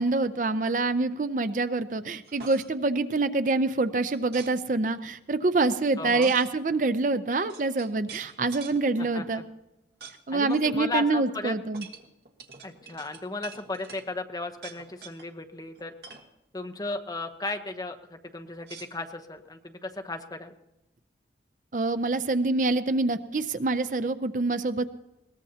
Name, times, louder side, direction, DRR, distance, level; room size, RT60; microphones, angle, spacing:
voice 1, 0.0-9.4 10.3-11.9 21.7-24.8, right 3 dB, 45° right, 11 dB, 0.5 m, -26 dB
sound 1, 2.3-2.7 4.1-4.5 6.2-6.5 7.2-7.3 7.5-8.8 10.0-10.2 10.5-10.6 11.7-14.1 14.5-15.3 15.8-16.3 18.6-19.5, right 6 dB, 70° right, 1.6 m, -45 dB
voice 2, 6.0-6.3 9.0-9.4 10.3-11.5 12.6-15.9 16.5-20.5, left 3 dB, 20° left, 5 dB, 0.9 m, -35 dB
21.0 x 18.5 x 2.8 m, 0.93 s
head